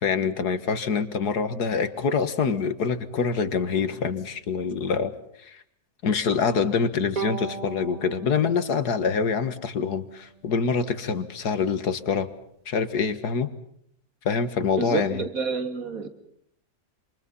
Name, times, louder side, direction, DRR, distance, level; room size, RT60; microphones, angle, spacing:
voice 1, 0.0-5.1 5.4-5.6 6.0-12.3 12.7-13.5 14.3-15.2, left 5 dB, 75° left, 11 dB, 2.2 m, -25 dB
Bowed string instrument, 7.2-10.5, right 5 dB, 30° right, 1.0 m, -38 dB
voice 2, 14.8-16.1, right 4 dB, 55° right, 8 dB, 2.9 m, -29 dB
28.0 x 27.0 x 5.6 m, 0.71 s
omnidirectional pair, 1.7 m